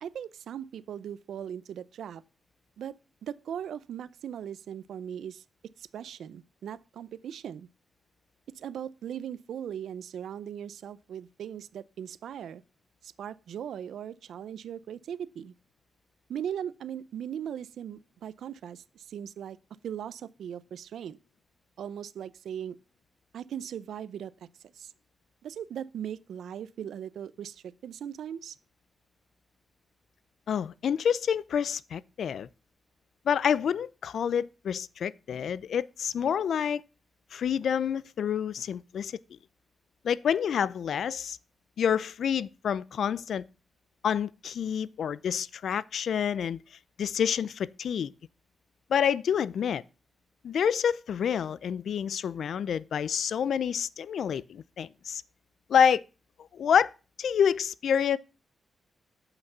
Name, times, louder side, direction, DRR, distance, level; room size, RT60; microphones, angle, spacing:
voice 1, 0.0-2.2 2.8-3.0 3.2-5.4 5.8-7.7 8.6-12.6 13.0-15.5 16.3-19.6 19.8-21.2 21.8-22.8 23.3-24.3 24.8-24.9 25.4-28.6, right 9 dB, 85° right, 0.4 m, -39 dB
voice 2, 30.5-32.5 33.3-36.8 37.3-39.2 40.0-41.4 41.8-43.5 44.0-46.6 47.0-48.1 48.9-49.8 50.4-55.2 55.7-56.0 56.5-56.9 57.2-58.2, left 8 dB, 75° left, 0.4 m, -28 dB
7.9 x 5.9 x 5.4 m
cardioid pair, 95°, 0 cm